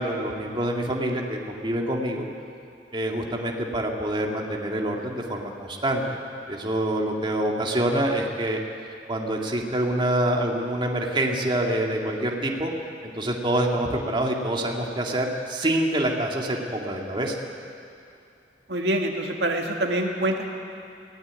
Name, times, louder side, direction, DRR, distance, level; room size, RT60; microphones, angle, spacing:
voice 1, 0.0-2.3 2.9-6.0 6.5-8.6 9.1-12.7 13.0-17.4, right 1 dB, 30° right, 0 dB, 2.2 m, -26 dB
voice 2, 18.7-20.5, right 1 dB, 70° right, 2 dB, 2.0 m, -25 dB
23.5 x 17.0 x 9.6 m, 2.5 s
head